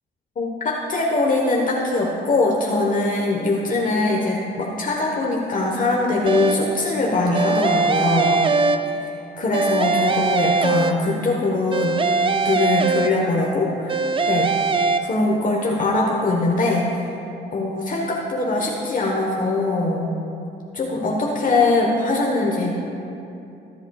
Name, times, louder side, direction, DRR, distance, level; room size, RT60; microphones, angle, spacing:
voice 1, 0.4-8.3 9.0-12.0 12.4-14.0 14.3-14.5 15.0-16.9 17.5-20.1 20.7-22.7, left 2 dB, 40° left, -2 dB, 1.2 m, -22 dB
sound 1, 6.3-6.8 7.3-9.2 9.5-11.3 11.7-13.5 13.9-15.0, right 4 dB, 25° right, 0.5 m, -21 dB
20.0 x 8.1 x 2.4 m, 2.8 s
cardioid pair, 90°, 20 cm